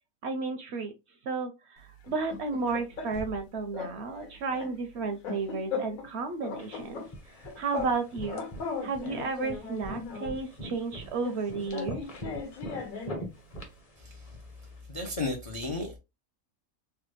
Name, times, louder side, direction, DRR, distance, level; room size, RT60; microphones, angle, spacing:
voice 1, 0.2-0.9 1.2-7.0 7.6-8.4 8.8-12.0, right 4 dB, 65° right, 0.7 m, -33 dB
sound 1, 2.0-3.4 3.7-4.0 4.2-6.1 6.4-10.4 11.2-13.2, left 5 dB, 75° left, 1.2 m, -38 dB
sound 2, 6.6-14.8, right 1 dB, 30° left, 0.8 m, -43 dB
voice 2, 14.9-16.0, left 2 dB, 50° left, 0.4 m, -33 dB
3.1 x 2.3 x 3.1 m
omnidirectional pair, 1.4 m